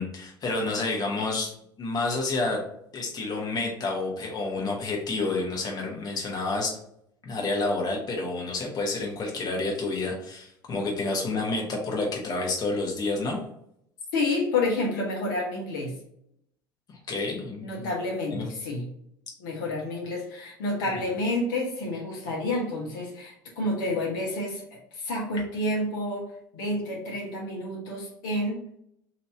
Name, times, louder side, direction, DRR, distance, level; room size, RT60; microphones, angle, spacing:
voice 1, 0.0-1.5 1.8-2.6 2.9-6.8 7.2-13.4 16.9-17.9 18.3-18.5 20.8-21.0, left 3 dB, 35° left, 0 dB, 1.1 m, -29 dB
voice 2, 14.1-15.9 17.6-18.9 19.4-28.6, left 2 dB, 70° left, -2 dB, 1.1 m, -29 dB
2.9 x 2.9 x 4.5 m, 0.72 s
figure-of-eight pair, 70°, 11 cm